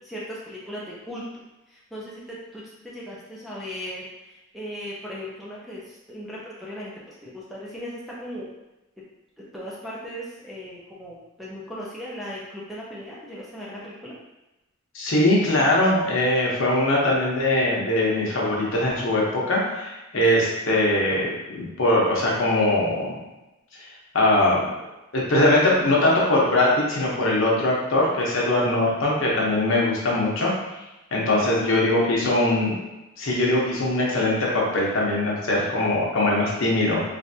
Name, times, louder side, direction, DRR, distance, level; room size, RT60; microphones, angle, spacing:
voice 1, 0.0-1.2 1.7-8.5 9.5-14.1 20.1-20.5 31.4-31.5 31.7-32.5 35.5-36.3, equal, ahead, -7 dB, 0.4 m, -38 dB
voice 2, 14.9-23.1 24.1-24.6 25.1-30.5 31.1-32.7 33.2-37.0, left 1 dB, 70° left, -4 dB, 0.8 m, -21 dB
3.3 x 2.5 x 2.6 m, 1.0 s
head